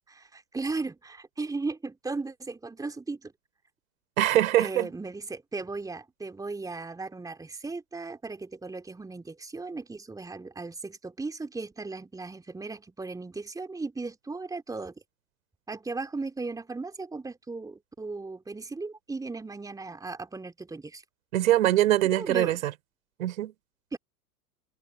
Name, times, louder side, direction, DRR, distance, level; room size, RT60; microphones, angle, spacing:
voice 1, 0.0-3.3 4.6-14.9 15.7-21.0 22.1-22.6 23.9-24.0, right 3 dB, 10° right, 2.9 m, -36 dB
voice 2, 4.2-4.9 21.3-22.6 23.2-23.5, right 14 dB, 60° right, 3.8 m, -23 dB
figure-of-eight pair, 95°, 46 cm